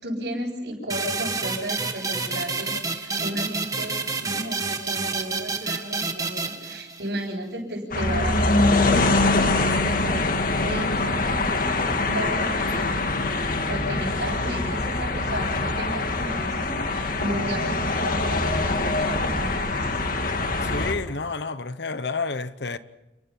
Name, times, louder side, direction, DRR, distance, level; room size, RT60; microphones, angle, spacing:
voice 1, 0.0-20.0, right 1 dB, 65° right, 7.7 m, -34 dB
sound 1, 0.9-7.3, right 4 dB, 20° right, 1.6 m, -29 dB
sound 2, 7.9-20.9, left 2 dB, 50° left, 2.0 m, -24 dB
voice 2, 20.6-22.8, left 4 dB, 70° left, 1.0 m, -30 dB
30.0 x 20.0 x 5.8 m
head